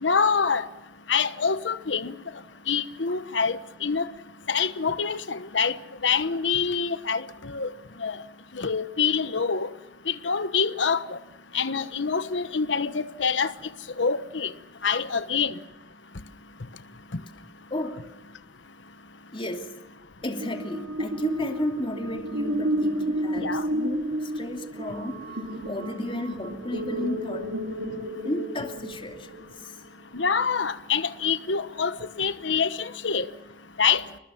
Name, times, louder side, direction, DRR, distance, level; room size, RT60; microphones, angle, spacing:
voice 1, 0.0-0.7 1.1-2.1 2.7-4.1 4.5-5.8 6.0-7.7 8.0-8.2 8.5-9.7 10.1-11.2 11.5-13.5 14.0-14.5 14.8-15.5 23.4-23.6 30.1-33.3 33.8-34.0, left 5 dB, 80° left, 1.2 m, -26 dB
voice 2, 17.7-18.0 19.3-19.7 20.2-25.3 25.6-27.5 28.2-29.8, left 1 dB, 30° left, 2.8 m, -33 dB
sound 1, 20.3-29.6, right 1 dB, 85° right, 3.0 m, -31 dB
28.5 x 21.0 x 7.2 m
head